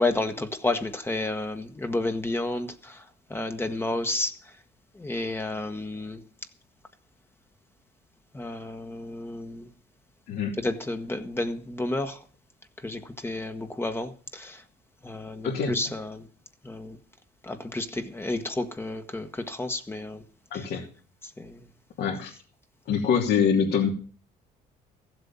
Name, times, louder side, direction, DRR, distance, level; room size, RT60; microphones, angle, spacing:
voice 1, 0.0-3.0 3.3-4.3 5.0-6.2 8.3-9.7 10.6-12.2 12.8-14.6 15.0-16.2 16.6-17.0 17.4-20.2 20.5-20.7 21.4-21.6, left 2 dB, 15° left, 1.3 m, -31 dB
voice 2, 15.4-15.7 20.5-20.8 22.0-22.3 22.9-23.9, left 7 dB, 70° left, 2.9 m, -24 dB
15.0 x 7.8 x 7.1 m
cardioid pair, 110°, 17 cm